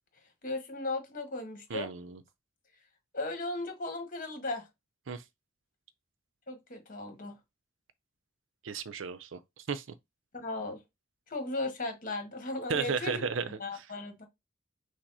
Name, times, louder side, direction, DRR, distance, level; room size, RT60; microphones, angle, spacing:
voice 1, 0.4-1.9 3.1-4.7 6.5-7.3 10.4-10.8 11.3-13.1 13.6-14.3, left 2 dB, 45° left, 1.4 m, -36 dB
voice 2, 1.7-2.2 5.1-5.2 8.6-9.4 9.7-9.8 12.7-13.8, right 5 dB, 80° right, 0.6 m, -34 dB
6.0 x 2.1 x 4.0 m
head